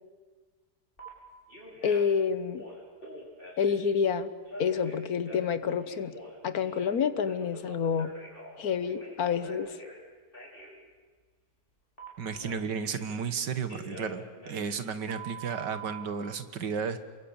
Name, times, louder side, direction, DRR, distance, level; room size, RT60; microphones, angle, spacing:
Telephone, 1.0-1.1 1.5-2.1 2.5-3.9 4.5-6.9 7.2-10.0 10.3-10.7 12.0-13.3 13.7-16.0, right 2 dB, 30° left, 6.2 m, -46 dB
voice 1, 1.8-2.7 3.6-4.3 4.6-6.1 6.4-8.1 8.6-9.7, left 6 dB, 60° left, 13 dB, 1.6 m, -28 dB
voice 2, 12.2-17.0, right 6 dB, 80° right, 10 dB, 2.1 m, -33 dB
28.5 x 22.0 x 8.8 m, 1.4 s
omnidirectional pair, 1.8 m